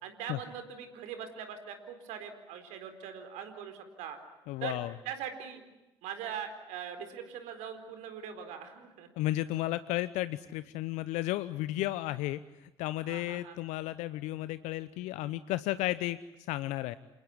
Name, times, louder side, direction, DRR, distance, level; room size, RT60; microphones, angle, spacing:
voice 1, 0.0-4.2 4.6-4.8 5.0-5.6 6.0-9.1 13.0-13.6, right 8 dB, 70° right, 8 dB, 4.3 m, -41 dB
voice 2, 4.5-4.9 9.2-16.2 16.5-17.0, left 16 dB, 65° left, 15 dB, 0.9 m, -33 dB
28.5 x 20.5 x 9.7 m, 0.99 s
hypercardioid pair, 55°, 13 cm